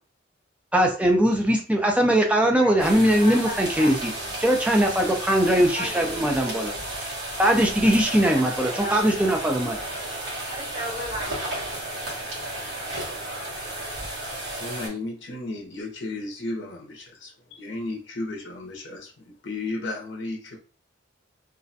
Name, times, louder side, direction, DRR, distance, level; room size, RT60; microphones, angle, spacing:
voice 1, 0.7-3.9 4.4-6.7 7.4-9.8, equal, 5° right, 2 dB, 0.4 m, -20 dB
voice 2, 2.3-4.4 5.7-6.9 8.3-9.7 10.5-11.8, equal, 35° right, -8 dB, 1.4 m, -38 dB
sound 1, 2.8-14.9, right 1 dB, 55° right, 1.0 m, -33 dB
voice 3, 14.6-20.6, left 2 dB, 65° left, 0 dB, 0.6 m, -34 dB
2.4 x 2.1 x 2.6 m, 0.39 s
head